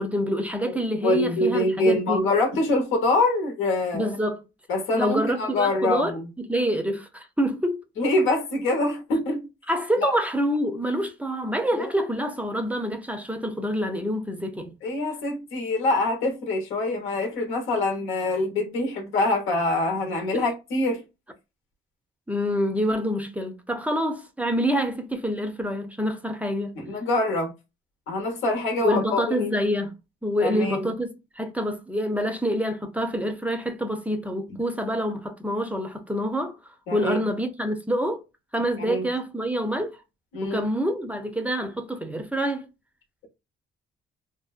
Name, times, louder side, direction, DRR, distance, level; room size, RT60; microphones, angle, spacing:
voice 1, 0.0-2.3 3.9-4.4 4.9-7.8 9.7-14.7 20.3-20.5 22.3-26.8 28.8-29.9 30.2-36.6 36.9-38.2 38.5-40.0 40.4-42.7, equal, 5° right, 0.4 m, -27 dB
voice 2, 1.0-4.1 4.7-6.3 8.0-9.5 10.0-10.1 14.8-21.0 26.8-27.5 28.1-29.6 30.4-30.9 36.9-37.2 38.8-39.1 40.3-40.6, left 2 dB, 85° left, 1.0 m, -25 dB
2.6 x 2.1 x 2.3 m
cardioid pair, 90°, 20 cm